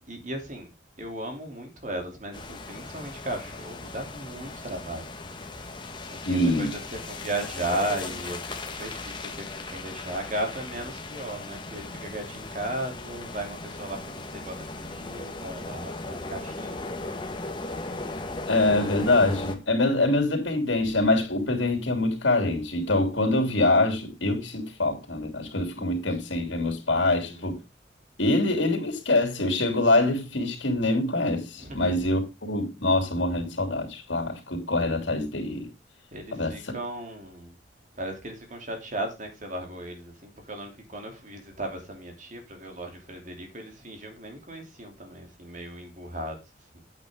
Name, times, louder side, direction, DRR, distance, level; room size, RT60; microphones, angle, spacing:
voice 1, 0.1-0.7 1.0-5.0 6.1-16.9 20.8-21.0 27.0-27.5 31.6-31.9 36.1-37.6 38.0-46.4 46.7-46.8, right 1 dB, 45° right, 3.0 m, -36 dB
sound 1, 2.3-19.6, left 2 dB, 25° left, 1.4 m, -37 dB
voice 2, 6.2-6.7 18.5-27.6 28.2-35.7 36.3-36.5, left 2 dB, 85° left, 3.2 m, -24 dB
9.3 x 8.3 x 3.6 m
head